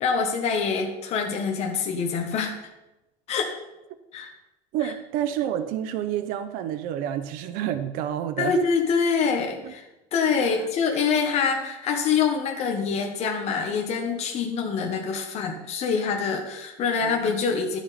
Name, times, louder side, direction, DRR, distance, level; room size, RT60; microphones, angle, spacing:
voice 1, 0.0-2.5 3.3-3.5 4.1-4.3 4.8-4.9 8.4-9.8 10.1-17.8, left 5 dB, 40° left, 2 dB, 1.2 m, -25 dB
voice 2, 4.7-8.6 9.6-9.7 10.4-10.5 17.0-17.3, right 10 dB, 65° right, 10 dB, 0.7 m, -29 dB
12.5 x 6.1 x 4.2 m, 0.97 s
cardioid pair, 145°, 16 cm